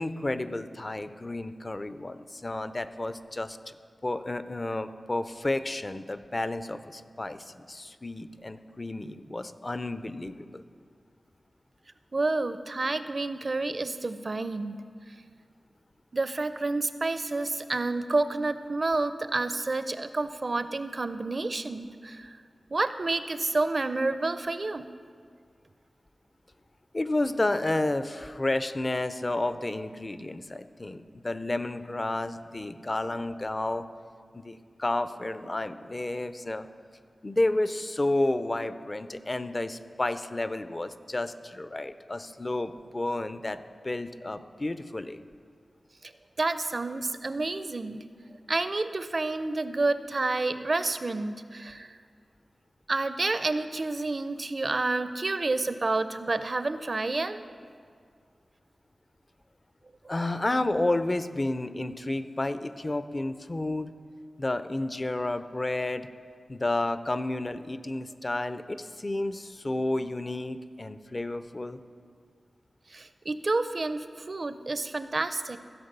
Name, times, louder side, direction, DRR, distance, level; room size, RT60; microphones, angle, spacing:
voice 1, 0.0-3.7 4.0-10.6 26.9-33.8 34.3-36.7 37.2-45.2 60.1-63.9 64.4-66.1 66.5-71.8, left 2 dB, 35° left, 12 dB, 0.5 m, -31 dB
voice 2, 12.1-14.8 16.1-22.4 22.7-24.8 46.0-46.1 46.4-48.0 48.5-52.0 52.9-57.5 72.9-75.6, right 3 dB, 50° right, 11 dB, 0.5 m, -29 dB
15.0 x 5.2 x 6.7 m, 2.1 s
wide cardioid pair, 70°, 0 cm